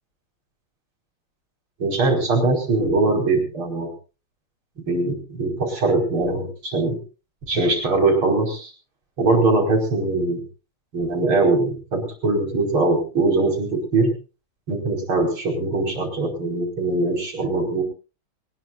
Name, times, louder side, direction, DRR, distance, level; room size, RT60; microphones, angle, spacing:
voice 1, 1.8-3.9 4.9-7.0 7.5-8.7 9.2-10.4 10.9-14.1 14.7-17.8, right 3 dB, 70° right, 3 dB, 5.8 m, -21 dB
23.0 x 20.0 x 2.5 m, 0.34 s
omnidirectional pair, 2.3 m